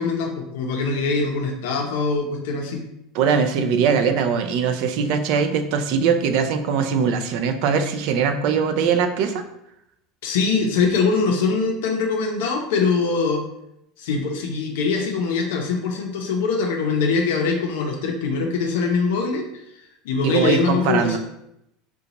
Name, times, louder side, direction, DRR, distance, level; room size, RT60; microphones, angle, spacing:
voice 1, 0.0-2.8 10.2-13.4 14.0-19.5 20.0-21.2, left 4 dB, 80° left, 1 dB, 0.5 m, -22 dB
voice 2, 3.1-9.4 20.2-21.2, right 6 dB, 50° right, 7 dB, 0.3 m, -21 dB
3.9 x 2.2 x 2.9 m, 0.81 s
supercardioid pair, 175°, 0 cm